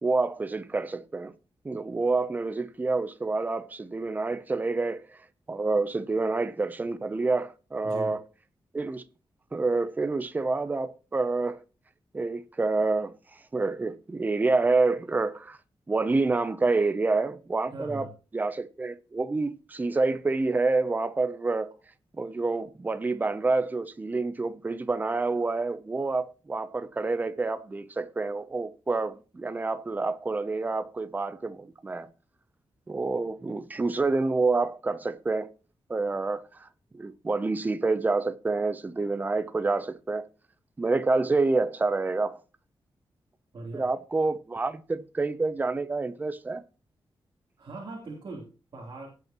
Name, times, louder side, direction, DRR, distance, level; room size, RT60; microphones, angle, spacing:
voice 1, 0.0-1.3 1.6-5.2 5.5-8.2 8.7-9.0 9.5-11.6 12.1-15.6 15.9-18.1 18.3-21.7 22.2-32.1 32.9-35.5 35.9-36.7 36.9-40.2 40.8-42.4 43.7-46.6, right 3 dB, 20° right, 0.6 m, -28 dB
voice 2, 7.8-8.2 17.7-18.1 43.5-43.9 47.6-49.1, right 2 dB, 50° right, 3.3 m, -40 dB
18.0 x 8.1 x 3.0 m
wide cardioid pair, 170°, 9 cm